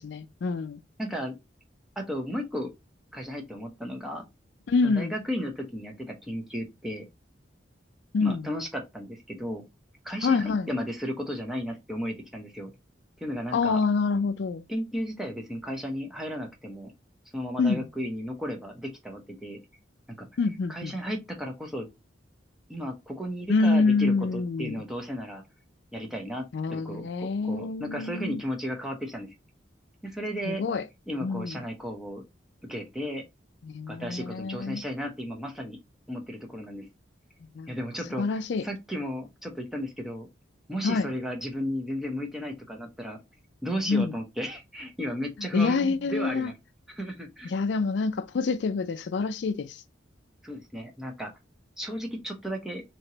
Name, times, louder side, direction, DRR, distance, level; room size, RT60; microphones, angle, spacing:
voice 1, 0.0-0.8 4.7-5.1 8.1-8.5 10.2-10.7 13.5-14.6 17.6-17.9 20.4-21.0 23.5-24.8 26.5-28.4 30.5-30.8 31.2-31.6 33.6-34.8 37.5-37.7 38.2-38.7 40.8-41.1 43.9-44.1 45.4-46.5 47.4-49.8, left 4 dB, 65° left, 0.4 m, -26 dB
voice 2, 1.0-1.3 2.0-2.7 3.1-4.3 4.8-7.1 8.2-9.6 10.0-12.7 13.2-13.8 14.7-16.9 17.3-19.6 20.2-20.3 20.7-21.9 22.7-25.4 25.9-29.3 30.0-30.6 31.1-32.2 32.6-33.2 33.9-35.8 36.1-36.9 37.7-38.2 38.6-40.3 40.7-43.2 43.6-46.5 46.9-47.5 50.4-51.3 51.8-52.8, equal, ahead, 0.8 m, -34 dB
3.3 x 2.9 x 2.7 m
head